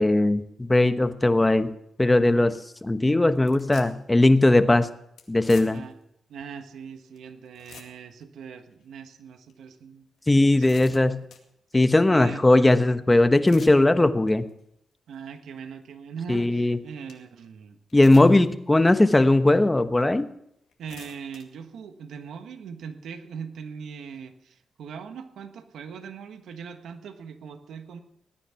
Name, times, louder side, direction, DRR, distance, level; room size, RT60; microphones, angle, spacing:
voice 1, 0.0-1.7 2.0-4.9 5.3-5.8 10.3-11.2 11.7-14.4 16.3-16.8 17.9-20.3, left 2 dB, 20° left, 10 dB, 1.1 m, -19 dB
sound 1, 2.0-2.2 2.5-2.7 3.3-4.1 4.4-4.5 5.2-6.0 6.6-6.7 7.2-7.3 7.4-8.2 8.7-8.8 9.5-9.6 10.2-11.5 13.2-13.8 14.3-14.6 15.1-15.2 16.7-16.8 17.1-17.2 17.9-18.5 19.0-19.1 20.0-20.1 20.6-21.4, left 7 dB, 85° left, 2.2 m, -48 dB
voice 2, 6.3-10.7 11.0-11.2 12.1-12.5 15.1-17.8 20.8-28.0, right 6 dB, 80° right, 8 dB, 1.4 m, -40 dB
19.5 x 10.0 x 5.8 m, 0.74 s
cardioid pair, 70°, 0 cm